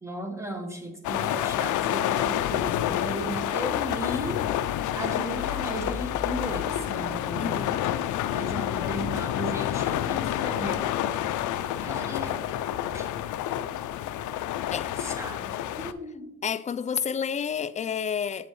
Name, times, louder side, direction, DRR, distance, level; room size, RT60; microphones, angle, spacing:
voice 1, 0.0-4.4 4.9-7.6 8.3-11.0 11.7-12.4 12.9-13.1 15.0-16.3, equal, 10° right, 1.5 m, -35 dB
sound 1, 1.0-15.9, left 11 dB, 80° left, 0.5 m, -29 dB
voice 2, 7.4-7.8 14.7-14.9 16.4-18.5, left 7 dB, 25° left, 0.3 m, -30 dB
7.5 x 7.3 x 3.1 m
cardioid pair, 90°, 30 cm